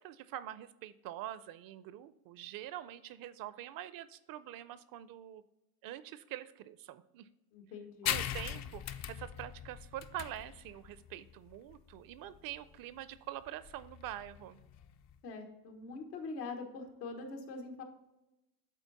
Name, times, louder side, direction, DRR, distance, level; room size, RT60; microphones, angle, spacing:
voice 1, 0.0-5.4 5.8-7.3 8.0-14.6, right 13 dB, 45° right, 15 dB, 0.5 m, -45 dB
voice 2, 7.5-8.1 15.2-17.8, left 3 dB, 85° left, 3 dB, 1.4 m, -43 dB
sound 1, 8.1-15.2, left 10 dB, 40° left, 0.4 m, -41 dB
8.3 x 4.0 x 4.0 m, 0.97 s
supercardioid pair, 95°, 48 cm